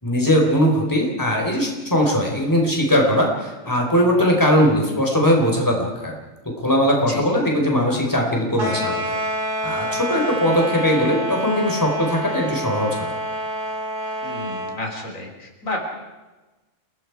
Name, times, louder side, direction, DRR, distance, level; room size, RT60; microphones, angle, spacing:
voice 1, 0.0-6.1 6.6-9.1 9.6-13.1, equal, 15° left, 0 dB, 4.3 m, -20 dB
sound 1, 8.5-14.8, equal, 70° right, 4.0 m, -27 dB
voice 2, 14.2-15.8, left 2 dB, 85° left, 1 dB, 4.3 m, -31 dB
29.0 x 19.0 x 4.8 m, 1.1 s
omnidirectional pair, 1.3 m